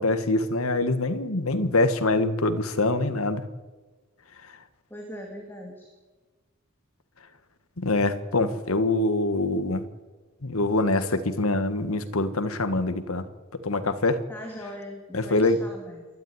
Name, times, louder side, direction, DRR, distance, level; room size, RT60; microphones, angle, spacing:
voice 1, 0.0-3.4 7.8-9.9 10.4-13.3 13.6-14.2 15.1-15.6, left 2 dB, 80° left, 10 dB, 1.7 m, -24 dB
voice 2, 4.9-5.9 14.3-16.1, equal, 10° left, 1 dB, 2.9 m, -40 dB
27.5 x 12.5 x 9.8 m, 1.3 s
head